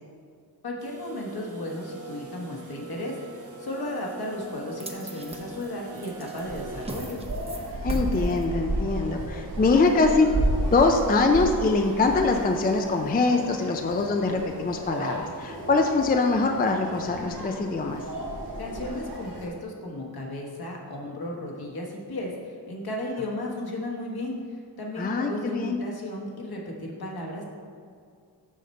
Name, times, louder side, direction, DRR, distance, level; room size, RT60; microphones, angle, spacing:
voice 1, 0.6-7.2 18.6-27.4, left 1 dB, 60° left, -1 dB, 1.4 m, -34 dB
sound 1, 0.8-6.9, right 3 dB, 45° right, 1.0 m, -43 dB
sound 2, 4.8-11.1, right 2 dB, 15° right, 0.6 m, -43 dB
sound 3, 6.4-19.5, right 1 dB, 60° right, 2.0 m, -33 dB
voice 2, 7.8-10.3 10.7-18.0 25.0-25.8, left 3 dB, 25° left, 4 dB, 0.4 m, -23 dB
6.6 x 6.5 x 4.3 m, 2.2 s
wide cardioid pair, 150°, 41 cm